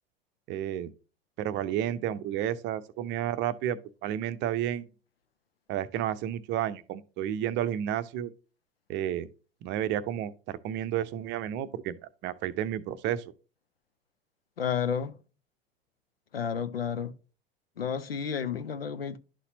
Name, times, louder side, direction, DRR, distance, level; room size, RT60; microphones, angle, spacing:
voice 1, 0.5-0.9 1.4-4.9 5.7-8.3 8.9-9.3 9.6-12.0 12.2-13.2, right 11 dB, 40° right, 0.6 m, -31 dB
voice 2, 14.6-15.1 16.3-17.1 17.8-19.2, left 7 dB, 80° left, 0.6 m, -31 dB
11.5 x 4.1 x 2.7 m
figure-of-eight pair, 75°, 29 cm